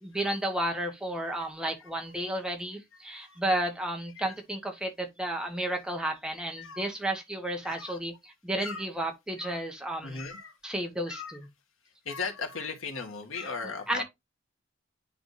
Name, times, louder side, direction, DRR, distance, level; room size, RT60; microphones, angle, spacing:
voice 1, 0.0-8.1 8.4-10.2 10.6-11.4 13.9-14.0, right 1 dB, 5° right, 1.1 m, -32 dB
voice 2, 3.1-3.4 4.2-4.3 6.6-6.9 7.6-8.0 8.6-8.9 9.4-9.6 10.0-10.6 11.1-11.4 12.1-14.0, left 4 dB, 90° left, 1.8 m, -38 dB
10.0 x 3.5 x 2.6 m
head